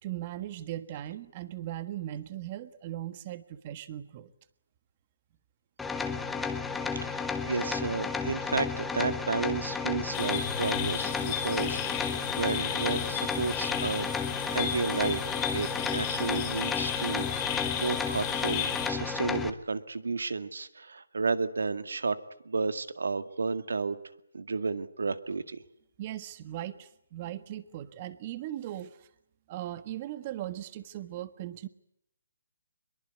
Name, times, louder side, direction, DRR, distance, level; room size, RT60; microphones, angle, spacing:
voice 1, 0.0-4.3 26.0-29.1 29.5-31.7, right 13 dB, 30° right, 14 dB, 1.5 m, -38 dB
sound 1, 5.8-19.5, left 5 dB, 5° left, 1.3 m, -33 dB
voice 2, 6.9-14.1 14.4-22.2 22.4-24.0 24.3-25.6, right 4 dB, 85° right, 12 dB, 2.0 m, -32 dB
sound 2, 10.1-18.9, left 9 dB, 20° left, 3.6 m, -34 dB
23.5 x 22.5 x 9.6 m, 0.74 s
hypercardioid pair, 165°, 0 cm